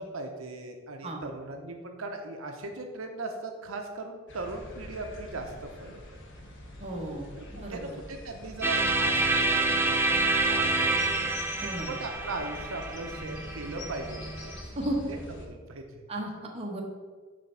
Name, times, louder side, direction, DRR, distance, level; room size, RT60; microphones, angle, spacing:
voice 1, 0.0-6.2 7.4-11.3 11.6-14.6 15.1-15.2 15.5-16.1, right 2 dB, 80° right, 4 dB, 0.7 m, -39 dB
sound 1, 4.3-15.5, left 1 dB, 60° left, 1.3 m, -44 dB
voice 2, 6.8-8.0 11.6-11.9 14.8-15.0 16.1-16.8, right 1 dB, 30° right, 0 dB, 1.0 m, -34 dB
sound 2, 8.6-14.5, right 2 dB, 10° right, 0.5 m, -27 dB
7.2 x 3.4 x 5.5 m, 1.5 s
head